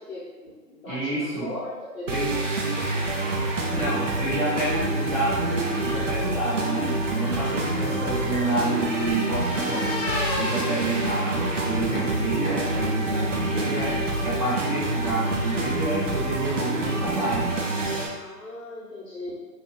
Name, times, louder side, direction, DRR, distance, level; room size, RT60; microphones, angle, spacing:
voice 1, 0.0-3.9 18.1-19.3, left 1 dB, 55° left, -10 dB, 1.0 m, -39 dB
voice 2, 0.9-1.5 2.1-2.3 3.7-17.5, right 2 dB, 25° right, -10 dB, 0.7 m, -29 dB
sound 1, 2.1-18.1, right 2 dB, 50° right, 0.5 m, -27 dB
sound 2, 6.7-12.0, left 3 dB, 90° left, 0.7 m, -36 dB
2.8 x 2.3 x 2.9 m, 1.2 s
figure-of-eight pair, 155°, 49 cm